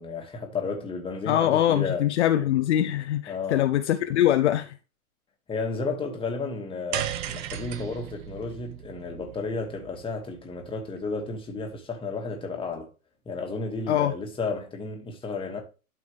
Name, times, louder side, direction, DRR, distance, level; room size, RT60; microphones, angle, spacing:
voice 1, 0.0-2.1 3.3-3.7 5.5-12.9 13.3-15.6, left 4 dB, 10° left, 2.0 m, -32 dB
voice 2, 1.3-4.7 13.9-14.1, left 12 dB, 50° left, 0.8 m, -23 dB
sound 1, 6.9-11.3, right 11 dB, 30° right, 0.9 m, -36 dB
12.0 x 5.1 x 3.4 m
hypercardioid pair, 125°, 44 cm